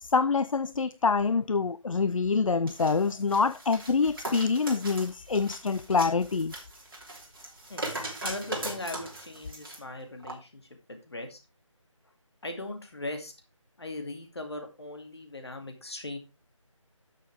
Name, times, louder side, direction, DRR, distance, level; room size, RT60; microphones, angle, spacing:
voice 1, 0.0-6.5, left 4 dB, 75° left, 0.5 m, -26 dB
sound 1, 2.7-9.8 10.2-10.3, right 2 dB, 45° right, 3.0 m, -39 dB
voice 2, 8.2-10.6 10.9-11.4 12.4-13.3 13.8-16.2, left 2 dB, 50° left, 2.4 m, -39 dB
12.5 x 6.7 x 3.5 m
figure-of-eight pair, 175°, 17 cm